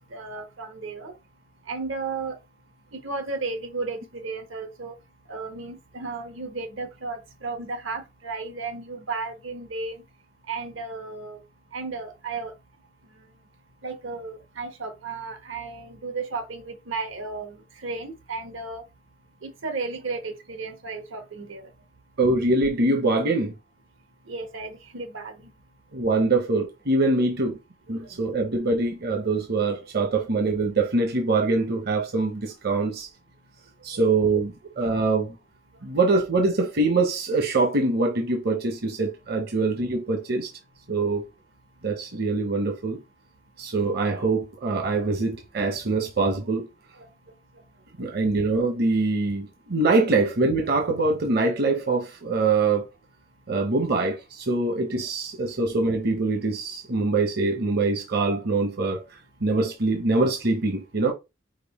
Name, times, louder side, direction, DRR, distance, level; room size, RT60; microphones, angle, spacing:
voice 1, 0.1-1.1 1.7-2.4 3.0-4.9 5.3-10.0 10.5-11.4 11.7-12.5 13.8-17.6 17.8-18.8 19.4-21.7 24.3-25.3 27.9-28.0 33.9-34.0 47.0-47.1, right 4 dB, 80° right, 1.1 m, -34 dB
voice 2, 22.2-23.5 25.9-27.6 27.9-33.1 33.8-35.3 35.8-40.5 40.9-41.2 41.8-43.0 43.6-46.7 48.0-52.8 53.5-59.0 59.4-61.1, right 3 dB, 55° right, 0.7 m, -24 dB
5.2 x 2.1 x 4.1 m
head